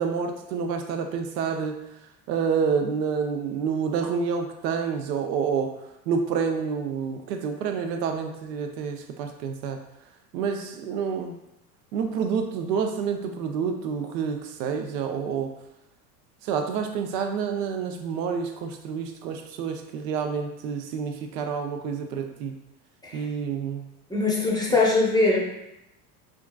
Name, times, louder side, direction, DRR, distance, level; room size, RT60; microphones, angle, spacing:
voice 1, 0.0-1.8 2.3-5.7 6.1-9.8 10.3-11.4 11.9-15.5 16.4-22.5 23.1-23.9 24.7-24.8, right 6 dB, 80° right, 5 dB, 0.6 m, -28 dB
voice 2, 24.1-25.4, left 3 dB, 10° left, -4 dB, 0.6 m, -22 dB
3.6 x 2.4 x 2.2 m, 0.86 s
hypercardioid pair, 90°, 49 cm